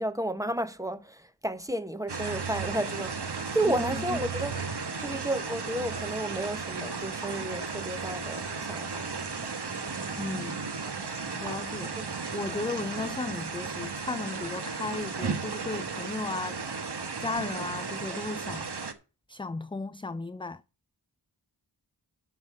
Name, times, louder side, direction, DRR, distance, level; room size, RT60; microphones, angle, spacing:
voice 1, 0.0-4.5 5.0-9.3 12.0-12.1 12.5-12.8, right 1 dB, 10° right, 1.1 m, -32 dB
sound 1, 2.1-18.9, right 5 dB, 65° right, 1.5 m, -35 dB
voice 2, 3.6-4.2 10.2-10.6 11.4-12.0 12.3-18.7 19.3-20.6, left 3 dB, 10° left, 0.4 m, -35 dB
13.0 x 5.9 x 4.9 m
wide cardioid pair, 55°, 43 cm